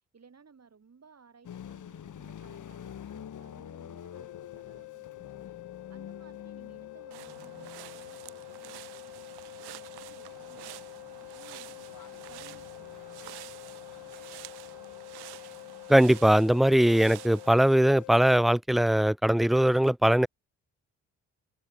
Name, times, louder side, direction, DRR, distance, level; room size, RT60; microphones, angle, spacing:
voice 1, 0.1-5.5 5.9-11.9 12.3-14.5, right 5 dB, 40° right, 7.4 m, -59 dB
sound 1, 1.4-18.5, left 9 dB, 50° left, 1.6 m, -49 dB
sound 2, 4.1-18.4, left 24 dB, 80° left, 1.4 m, -47 dB
sound 3, 7.1-17.8, right 18 dB, 75° right, 1.9 m, -48 dB
voice 2, 15.9-20.3, right 1 dB, ahead, 0.4 m, -21 dB
hypercardioid pair, 50°, 39 cm